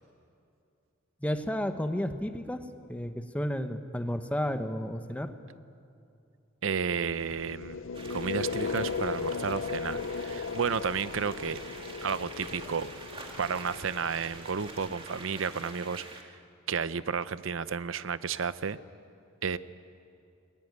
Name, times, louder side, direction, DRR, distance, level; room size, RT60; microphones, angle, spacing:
voice 1, 1.2-2.6 2.9-5.3, equal, 5° left, 7 dB, 1.1 m, -32 dB
voice 2, 6.6-7.8 8.1-11.6 12.0-12.9 13.4-16.4 16.7-18.8 19.4-19.6, right 6 dB, 70° right, 15 dB, 0.7 m, -32 dB
sound 1, 7.1-15.2, left 4 dB, 70° left, 0.7 m, -37 dB
sound 2, 7.9-16.2, right 3 dB, 25° right, 2.1 m, -46 dB
21.0 x 20.5 x 9.7 m, 2.5 s
head